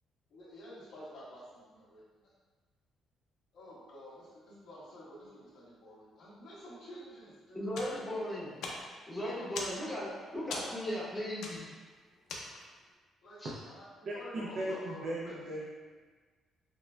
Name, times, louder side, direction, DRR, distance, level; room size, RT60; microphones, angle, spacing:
voice 1, 0.3-2.0 3.5-8.0 9.2-9.6 13.2-15.4, left 1 dB, 60° left, -10 dB, 1.4 m, -50 dB
voice 2, 7.5-8.5 9.1-11.6 13.4-13.5, equal, 5° left, -9 dB, 0.9 m, -37 dB
sound 1, 7.7-12.9, left 3 dB, 85° left, 0.5 m, -44 dB
voice 3, 14.1-15.6, right 1 dB, 45° right, -4 dB, 0.4 m, -37 dB
6.0 x 2.2 x 2.2 m, 1.4 s
cardioid pair, 180°, 0 cm